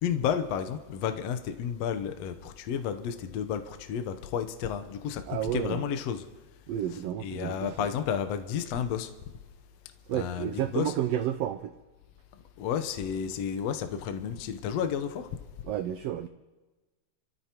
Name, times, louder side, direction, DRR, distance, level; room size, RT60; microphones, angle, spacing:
voice 1, 0.0-6.2 6.9-9.1 10.1-11.0 12.6-15.3, left 8 dB, 70° left, 1.8 m, -32 dB
voice 2, 5.3-5.8 6.7-7.7 10.1-11.7 15.7-16.3, right 11 dB, 85° right, 1.4 m, -31 dB
29.0 x 13.5 x 2.9 m
omnidirectional pair, 3.5 m